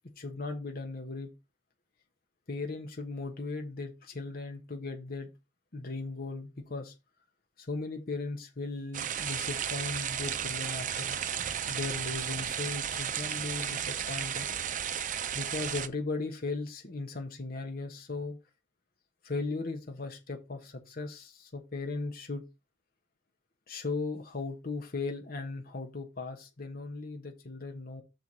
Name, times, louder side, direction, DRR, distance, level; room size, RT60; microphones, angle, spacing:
voice 1, 0.2-1.3 2.5-5.3 5.7-6.9 7.6-11.2 11.7-14.5 15.3-18.4 19.2-22.4 23.7-28.0, left 3 dB, 50° left, 4 dB, 1.1 m, -37 dB
sound 1, 8.9-15.9, right 9 dB, 45° right, 0.5 m, -34 dB
6.3 x 4.5 x 5.5 m, 0.26 s
head